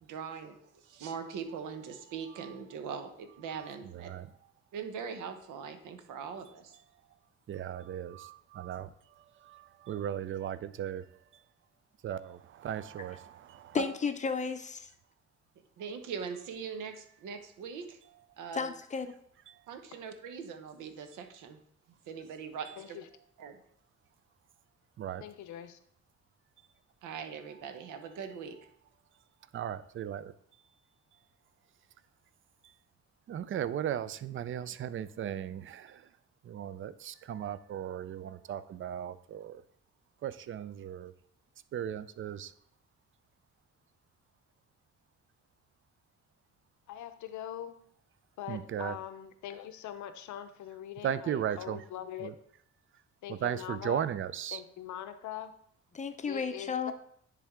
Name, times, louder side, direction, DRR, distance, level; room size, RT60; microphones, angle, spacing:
voice 1, 0.0-4.1 4.7-6.8 13.7-13.9 15.8-18.0 18.4-18.7 19.7-21.6 21.9-23.0 23.4-23.6 27.0-28.6, right 6 dB, 85° right, 8 dB, 0.9 m, -41 dB
voice 2, 3.8-4.3 7.5-11.0 12.0-13.8 25.0-25.2 29.5-30.3 33.3-36.1 36.4-39.6 40.2-41.1 41.7-42.5 48.5-48.9 51.0-51.8 52.2-52.3 53.3-54.6, right 10 dB, 45° right, 15 dB, 0.4 m, -37 dB
voice 3, 13.7-14.9 18.5-19.1 55.9-56.9, left 5 dB, 25° left, 9 dB, 0.6 m, -33 dB
voice 4, 22.8-23.1 25.2-25.8 46.9-47.8 48.4-52.4 53.2-54.1 54.5-55.5 56.2-56.9, left 10 dB, 70° left, 10 dB, 0.7 m, -42 dB
10.0 x 3.5 x 3.6 m, 0.68 s
cardioid pair, 90°, 30 cm